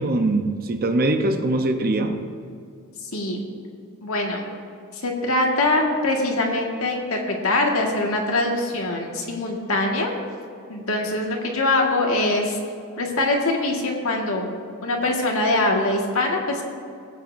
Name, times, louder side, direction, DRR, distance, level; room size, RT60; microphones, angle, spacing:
voice 1, 0.0-2.2, right 2 dB, 45° right, 6 dB, 0.7 m, -22 dB
voice 2, 3.1-3.5 4.0-4.5 5.0-10.1 10.7-12.6 13.0-14.5 14.8-16.6, left 2 dB, 70° left, 0 dB, 1.7 m, -23 dB
18.0 x 8.8 x 2.6 m, 2.4 s
head